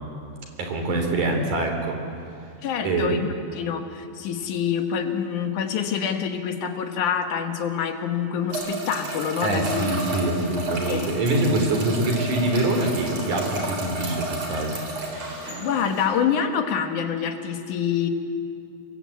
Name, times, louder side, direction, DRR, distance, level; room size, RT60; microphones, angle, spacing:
voice 1, 0.6-2.0 2.8-3.2 9.4-14.7, right 2 dB, 75° right, 3 dB, 4.9 m, -24 dB
voice 2, 2.6-9.8 10.9-11.1 15.4-18.1, left 7 dB, 75° left, 6 dB, 2.9 m, -26 dB
sound 1, 8.5-16.1, right 2 dB, 55° right, 5.0 m, -32 dB
26.0 x 21.0 x 8.5 m, 2.4 s
omnidirectional pair, 3.6 m